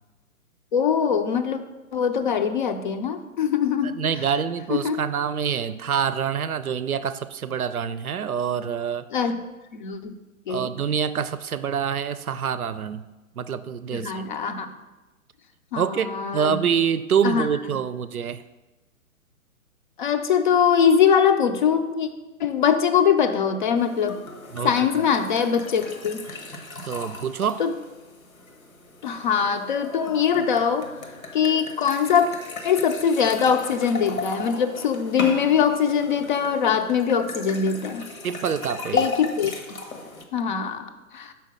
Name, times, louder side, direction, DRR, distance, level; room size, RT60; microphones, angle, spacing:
voice 1, 0.7-1.6 1.9-4.0 4.7-5.0 9.1-9.4 9.7-10.2 10.5-10.8 13.9-14.7 15.7-16.6 17.2-17.5 20.0-22.1 22.4-24.2 24.6-26.2 27.6-27.7 29.0-30.9 31.3-32.3 32.6-38.0 38.9-39.5 40.3-41.3, left 7 dB, 35° left, 9 dB, 0.5 m, -22 dB
voice 2, 3.8-9.1 10.5-13.0 13.4-14.2 15.8-18.4 24.5-24.7 26.8-27.6 38.2-39.1, right 7 dB, 85° right, 13 dB, 0.5 m, -26 dB
sound 1, 23.8-40.2, left 3 dB, 75° left, 1.2 m, -36 dB
5.7 x 4.4 x 6.3 m, 1.1 s
figure-of-eight pair, 120°, 42 cm